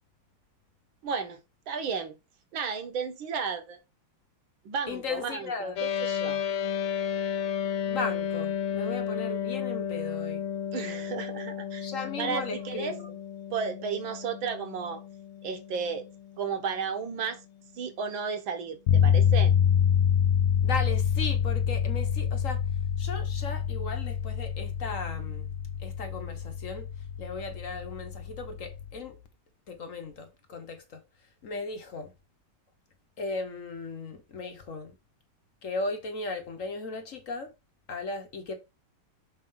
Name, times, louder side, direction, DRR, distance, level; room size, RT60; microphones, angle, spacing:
voice 1, 1.0-1.4 1.7-2.2 2.5-3.8 4.7-6.4 10.7-11.9 12.2-13.0 13.5-15.0 15.4-16.1 16.4-17.4 17.8-19.5, right 6 dB, 70° right, 1.8 m, -33 dB
voice 2, 4.9-5.8 7.9-10.4 11.8-13.1 20.6-22.6 23.0-25.5 25.8-26.9 27.2-29.2 29.7-31.0 31.4-32.1 33.2-34.9 35.6-37.5 37.9-38.5, left 3 dB, 45° left, 1.1 m, -36 dB
sound 1, 5.8-17.3, left 8 dB, 90° left, 1.6 m, -33 dB
sound 2, 18.9-29.0, left 8 dB, 65° left, 0.8 m, -26 dB
6.6 x 3.0 x 5.4 m
omnidirectional pair, 2.4 m